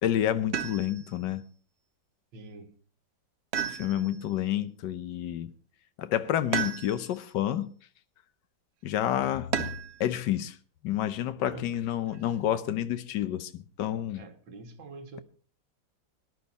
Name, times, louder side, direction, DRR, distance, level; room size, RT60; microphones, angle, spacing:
voice 1, 0.0-1.5 3.7-5.5 6.0-7.7 8.8-9.5 10.0-10.6 10.8-14.2, left 11 dB, 70° left, 1.5 m, -29 dB
sound 1, 0.5-1.2 3.5-4.3 6.5-7.2 9.5-10.0 11.7-12.4, right 8 dB, 55° right, 0.7 m, -33 dB
voice 2, 2.3-2.7 11.4-11.8 14.2-15.2, right 3 dB, 90° right, 2.2 m, -45 dB
19.0 x 11.0 x 4.1 m
omnidirectional pair, 2.0 m